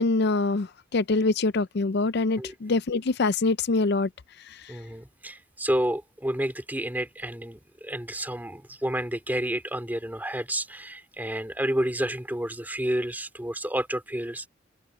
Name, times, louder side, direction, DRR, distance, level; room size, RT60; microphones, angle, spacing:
voice 1, 0.0-4.1 4.4-4.8, left 3 dB, 60° left, 0.5 m, -25 dB
voice 2, 4.7-14.5, right 1 dB, 10° right, 2.7 m, -30 dB
open air
head